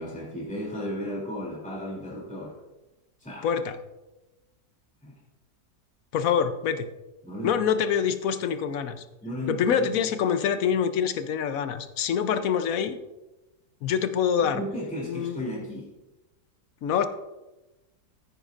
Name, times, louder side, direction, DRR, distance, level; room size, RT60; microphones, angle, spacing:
voice 1, 0.0-2.6 3.2-3.5 5.0-5.1 7.2-7.6 9.2-10.0 14.4-15.9, equal, 5° left, -6 dB, 2.9 m, -35 dB
voice 2, 3.4-3.8 6.1-6.9 7.4-9.0 9.5-13.0 13.8-14.6 15.0-15.4 16.8-17.1, left 7 dB, 65° left, 10 dB, 1.0 m, -25 dB
14.5 x 9.5 x 2.5 m, 1.1 s
omnidirectional pair, 1.8 m